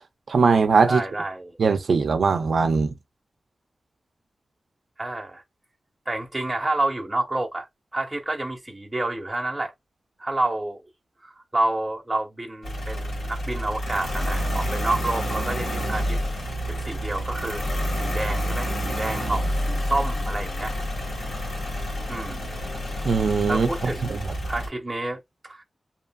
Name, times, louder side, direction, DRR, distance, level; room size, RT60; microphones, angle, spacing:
voice 1, 0.3-1.0 1.6-2.9 23.0-23.9, right 5 dB, 85° right, 0.4 m, -20 dB
voice 2, 0.9-1.6 5.0-5.4 6.1-7.7 7.9-9.7 10.2-10.8 11.2-16.2 16.7-17.7 17.9-20.7 22.1-22.6 23.5-25.2 25.4-25.6, right 2 dB, 15° right, 0.8 m, -29 dB
sound 1, 12.6-24.7, equal, 80° left, 1.5 m, -28 dB
2.7 x 2.5 x 2.2 m
wide cardioid pair, 115°, 0 cm